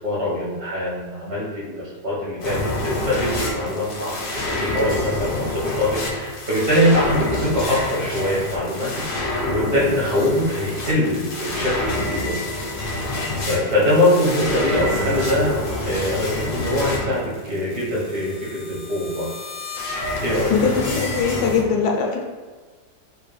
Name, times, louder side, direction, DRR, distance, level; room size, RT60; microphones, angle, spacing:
voice 1, 0.0-12.4 13.4-19.3 20.2-20.6, left 1 dB, 70° right, -7 dB, 1.8 m, -23 dB
sound 1, 2.4-21.6, left 2 dB, 55° left, 0.6 m, -28 dB
voice 2, 20.5-22.2, left 5 dB, 85° left, 1 dB, 1.3 m, -21 dB
5.1 x 2.2 x 3.2 m, 1.4 s
omnidirectional pair, 1.8 m